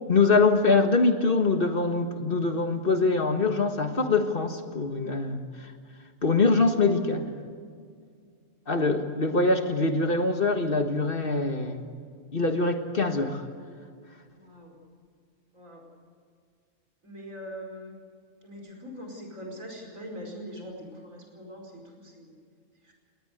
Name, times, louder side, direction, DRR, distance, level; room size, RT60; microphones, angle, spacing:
voice 1, 0.1-5.7 6.2-7.3 8.7-11.9 12.3-13.4, left 3 dB, 45° left, 6 dB, 1.8 m, -24 dB
voice 2, 14.3-14.8 15.5-15.8 17.0-18.0 18.4-22.4 22.8-22.9, equal, 85° right, 1 dB, 5.5 m, -42 dB
20.0 x 19.0 x 8.0 m, 2.1 s
omnidirectional pair, 1.3 m